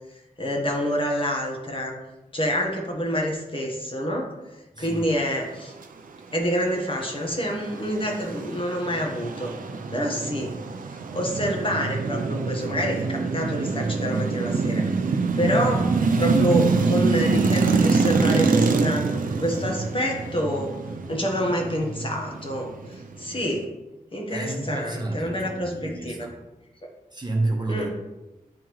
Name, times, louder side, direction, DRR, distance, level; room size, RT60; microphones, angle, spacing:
voice 1, 0.4-1.9 2.3-4.3 4.8-5.7 6.3-9.5 9.9-10.5 11.1-14.9 15.3-15.9 16.2-19.1 19.4-20.8 21.1-23.7 24.1-26.3 27.7-27.9, equal, 35° left, 0 dB, 1.2 m, -27 dB
voice 2, 4.7-5.1 24.3-26.4 27.1-27.9, right 2 dB, 30° right, 0 dB, 1.0 m, -30 dB
sound 1, 6.9-23.6, right 4 dB, 70° right, 0.5 m, -25 dB
8.6 x 3.6 x 3.1 m, 1.0 s
wide cardioid pair, 70°, 14 cm